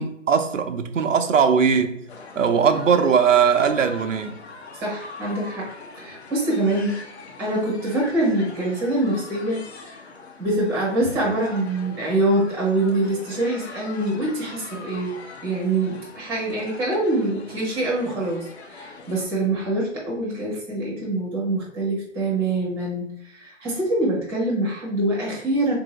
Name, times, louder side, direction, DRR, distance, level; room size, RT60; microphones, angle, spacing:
voice 1, 0.0-2.0 2.4-4.4, right 6 dB, 90° right, 0.6 m, -19 dB
sound 1, 2.1-19.2, left 3 dB, 60° left, 0.9 m, -42 dB
voice 2, 4.7-7.0 7.4-10.0 10.4-15.1 15.4-25.7, right 2 dB, 5° right, 0.7 m, -25 dB
3.7 x 2.6 x 3.0 m
figure-of-eight pair, 145°, 37 cm